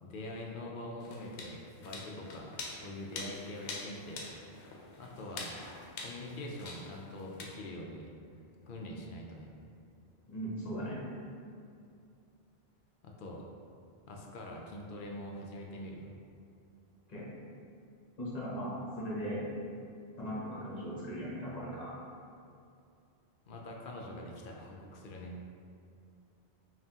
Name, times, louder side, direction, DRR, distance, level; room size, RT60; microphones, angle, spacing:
voice 1, 0.0-4.2 5.0-5.7 6.0-8.1 8.6-9.5 13.0-13.4 14.1-16.1 23.5-25.5, left 1 dB, 60° left, 0 dB, 0.7 m, -44 dB
sound 1, 1.0-7.4, left 3 dB, 90° left, 0.9 m, -45 dB
voice 2, 10.3-11.0 17.1-17.3 18.2-19.5 20.2-21.9, equal, 40° left, -6 dB, 1.0 m, -38 dB
5.5 x 2.4 x 2.8 m, 2.5 s
omnidirectional pair, 1.1 m